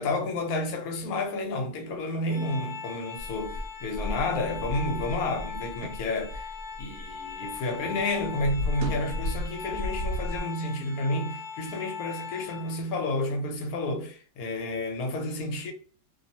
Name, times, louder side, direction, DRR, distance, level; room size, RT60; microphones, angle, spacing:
voice 1, 0.0-15.7, left 2 dB, 70° left, 1.0 m, -31 dB
Organ, 2.3-13.0, left 5 dB, 20° left, 0.6 m, -40 dB
sound 1, 3.2-7.6 7.8-10.4, left 1 dB, 65° right, 0.9 m, -34 dB
2.7 x 2.0 x 2.7 m
omnidirectional pair, 1.7 m